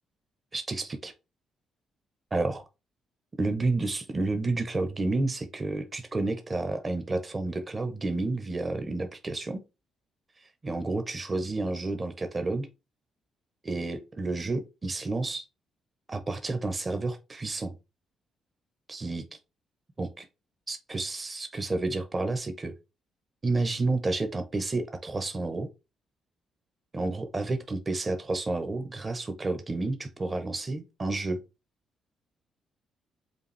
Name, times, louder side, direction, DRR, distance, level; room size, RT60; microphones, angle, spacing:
voice 1, 0.5-1.1 2.3-2.6 3.4-9.6 10.6-12.7 13.6-15.5 16.1-17.8 18.9-19.3 20.0-20.2 20.7-22.7 23.4-25.7 26.9-31.4, right 2 dB, 25° right, 0.8 m, -30 dB
5.2 x 2.4 x 3.2 m
cardioid pair, 90°, 0 cm